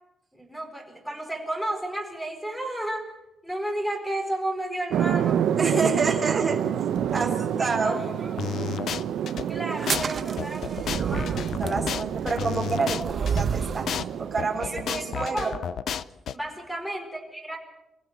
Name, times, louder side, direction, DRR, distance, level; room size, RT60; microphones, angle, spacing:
voice 1, 0.3-3.1 3.4-5.4 7.6-8.4 9.5-11.5 14.6-15.5 16.3-17.6, right 1 dB, 5° left, 3 dB, 4.8 m, -33 dB
sound 1, 4.9-15.6, right 9 dB, 80° right, 1.1 m, -29 dB
voice 2, 5.6-6.6 6.9-8.0 11.0-11.3 11.6-15.6, right 4 dB, 20° right, 0 dB, 3.4 m, -28 dB
sound 2, 8.4-9.4 9.9-10.0 10.4-13.4 13.9-14.0 14.4-16.3, left 9 dB, 65° left, 0.7 m, -31 dB
sound 3, 9.7-13.9, right 6 dB, 40° right, 1.1 m, -31 dB
24.0 x 16.5 x 7.7 m, 0.92 s
cardioid pair, 140°, 0 cm